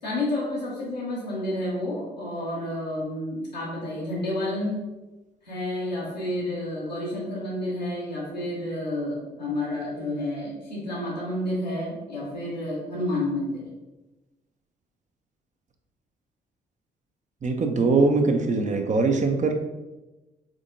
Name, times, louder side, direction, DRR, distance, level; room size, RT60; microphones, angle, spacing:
voice 1, 0.0-4.8 5.4-13.7, left 1 dB, 90° left, -6 dB, 1.1 m, -30 dB
voice 2, 17.4-19.5, right 3 dB, 35° right, 5 dB, 0.7 m, -22 dB
3.9 x 3.6 x 3.7 m, 1.1 s
figure-of-eight pair, 40°, 21 cm